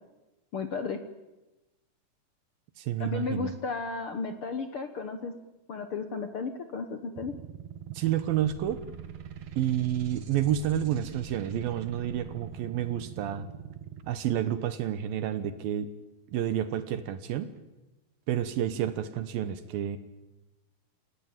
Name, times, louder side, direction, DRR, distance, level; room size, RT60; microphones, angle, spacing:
voice 1, 0.5-1.0 3.0-5.3 5.7-7.3, left 4 dB, 60° left, 7 dB, 1.4 m, -34 dB
voice 2, 2.8-3.5 7.9-8.8 9.6-13.5 14.0-15.9 16.3-17.5 18.3-20.0, right 11 dB, 75° right, 11 dB, 2.8 m, -29 dB
sound 1, 7.2-14.0, right 9 dB, 55° right, 2.2 m, -43 dB
sound 2, 8.2-13.1, left 3 dB, 35° left, 2.4 m, -54 dB
29.0 x 17.5 x 8.9 m, 1.1 s
omnidirectional pair, 4.3 m